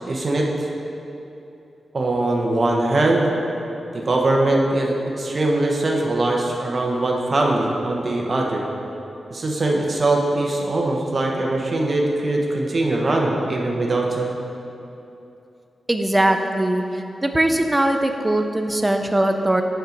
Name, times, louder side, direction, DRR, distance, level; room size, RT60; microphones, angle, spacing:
voice 1, 0.1-0.7 1.9-3.3 3.9-8.6 9.3-14.3, right 2 dB, 40° right, 0 dB, 0.9 m, -21 dB
voice 2, 15.9-16.8 17.2-19.6, right 1 dB, 15° right, 5 dB, 0.4 m, -20 dB
8.2 x 4.5 x 5.1 m, 2.9 s
wide cardioid pair, 145°, 0 cm